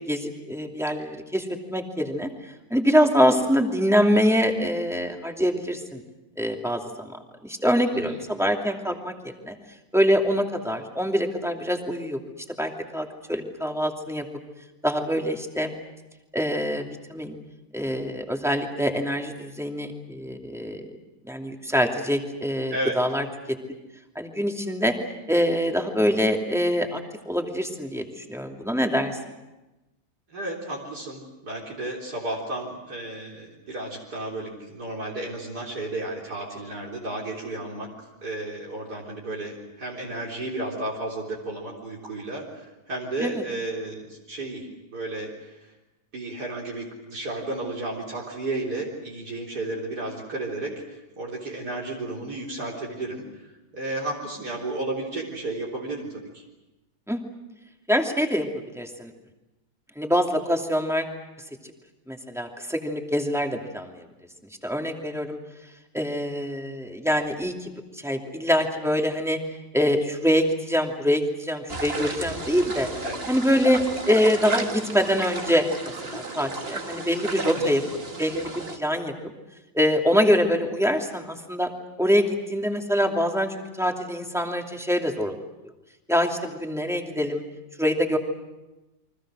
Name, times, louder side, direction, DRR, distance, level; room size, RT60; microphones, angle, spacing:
voice 1, 0.1-2.3 2.7-6.0 6.4-9.5 9.9-12.2 12.6-14.2 14.8-15.7 16.3-17.4 17.7-20.8 21.2-23.6 24.1-24.9 25.3-29.2 43.2-43.4 57.1-57.2 57.9-58.5 58.7-59.1 60.0-61.1 62.1-64.1 64.6-65.4 65.9-69.4 69.7-72.9 73.3-75.6 76.1-77.8 78.2-79.3 79.7-81.7 82.0-85.4 86.1-87.4 87.8-88.2, equal, ahead, 1 dB, 2.7 m, -24 dB
voice 2, 7.9-8.3 22.7-23.0 30.3-37.9 38.2-45.7 46.1-53.2 53.7-56.4 72.9-73.2 77.4-77.8, right 2 dB, 70° right, -3 dB, 4.3 m, -33 dB
sound 1, 71.7-78.8, right 2 dB, 35° right, 2.1 m, -33 dB
30.0 x 24.0 x 6.4 m, 1.0 s
omnidirectional pair, 1.8 m